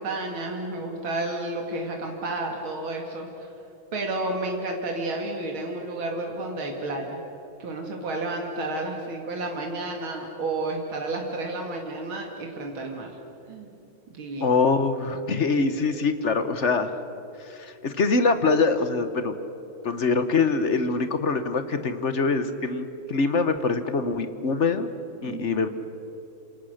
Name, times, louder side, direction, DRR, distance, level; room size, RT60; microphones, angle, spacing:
voice 1, 0.0-3.5 3.9-7.2 7.6-13.1 13.5-13.7 14.1-14.6 25.2-25.6, right 2 dB, 80° right, 1 dB, 3.1 m, -31 dB
voice 2, 14.4-17.0 17.5-19.3 19.8-24.9 25.2-25.7, left 4 dB, 45° left, 10 dB, 1.2 m, -24 dB
28.0 x 27.0 x 6.6 m, 2.9 s
omnidirectional pair, 2.2 m